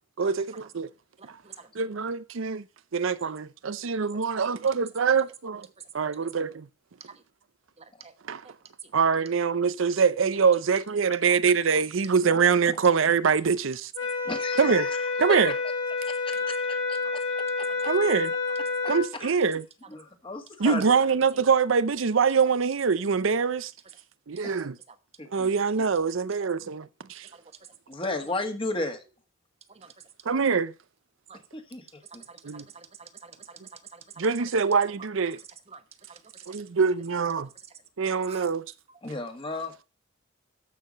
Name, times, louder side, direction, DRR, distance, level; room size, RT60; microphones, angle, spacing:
voice 1, 0.2-0.9 1.2-1.4 1.7-2.7 2.9-5.7 5.9-6.7 8.2-8.6 8.9-13.9 14.6-14.9 15.2-15.5 17.8-18.3 18.9-19.7 20.6-23.7 24.3-24.8 25.3-27.3 30.2-30.7 32.4-32.7 34.2-35.4 36.5-37.5 38.0-38.7, right 5 dB, 70° right, 0.6 m, -24 dB
voice 2, 7.8-8.1 17.7-17.8 29.7-29.9 31.3-31.4 32.3-33.6 33.9-34.3 35.7-35.8 38.3-38.4, right 6 dB, 30° right, 1.1 m, -47 dB
sound 1, 13.9-19.1, left 4 dB, 80° left, 5.7 m, -29 dB
voice 3, 14.3-15.1 16.1-16.8 17.4-17.5 17.8-17.9 19.2-19.3 19.9-21.1 25.2-25.5 27.9-29.0 31.5-31.8 32.1-32.2 39.0-39.7, left 2 dB, 25° left, 1.8 m, -34 dB
14.0 x 5.8 x 5.3 m
head